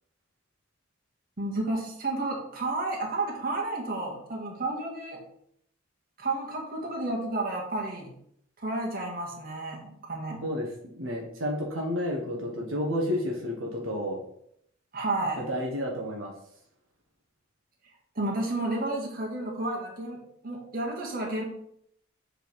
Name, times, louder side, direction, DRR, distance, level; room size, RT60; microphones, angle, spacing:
voice 1, 1.4-5.2 6.2-8.1 8.6-10.4 14.9-15.4 18.1-21.4, right 2 dB, 45° right, -1 dB, 1.8 m, -31 dB
voice 2, 10.4-14.2 15.4-16.3, left 1 dB, 85° right, 0 dB, 1.3 m, -31 dB
7.2 x 3.9 x 4.8 m, 0.70 s
head